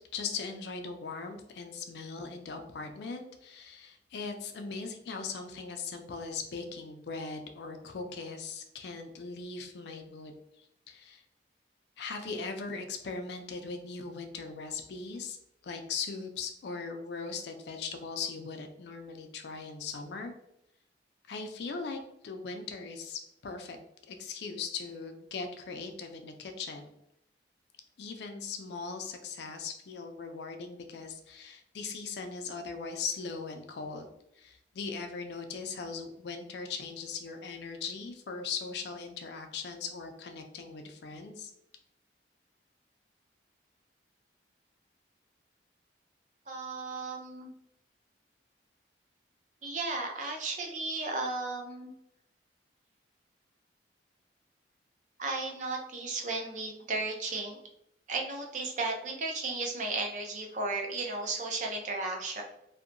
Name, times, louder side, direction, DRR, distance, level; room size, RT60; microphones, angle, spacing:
voice 1, 0.1-10.3 10.9-11.2 12.0-15.4 15.6-20.3 21.3-23.8 24.1-26.9 28.0-34.1 34.4-41.5, left 5 dB, 65° left, 5 dB, 0.4 m, -39 dB
voice 2, 46.5-47.5 49.6-51.9 55.2-57.6 58.1-62.4, right 3 dB, 40° right, 1 dB, 0.4 m, -34 dB
2.7 x 2.1 x 2.5 m, 0.79 s
head